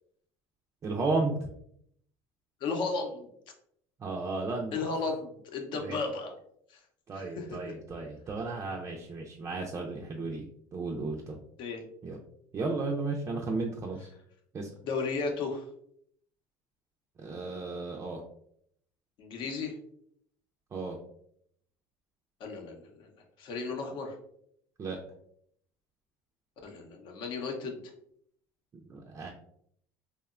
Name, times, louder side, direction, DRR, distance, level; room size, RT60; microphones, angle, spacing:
voice 1, 0.8-1.3 4.0-5.0 5.8-6.0 7.1-10.4 10.7-11.4 12.0-12.2 12.5-14.1 14.5-14.7 17.2-18.2 20.7-21.0 24.8-25.0 28.7-29.3, right 3 dB, 30° right, 0 dB, 0.4 m, -34 dB
voice 2, 2.6-3.3 4.7-6.3 6.7-6.8 7.1-7.7 11.6-11.8 14.8-15.6 19.2-19.7 22.4-23.1 23.4-24.1 26.6-27.8, left 4 dB, 60° left, 3 dB, 0.6 m, -34 dB
2.8 x 2.1 x 2.3 m, 0.68 s
supercardioid pair, 105°, 9 cm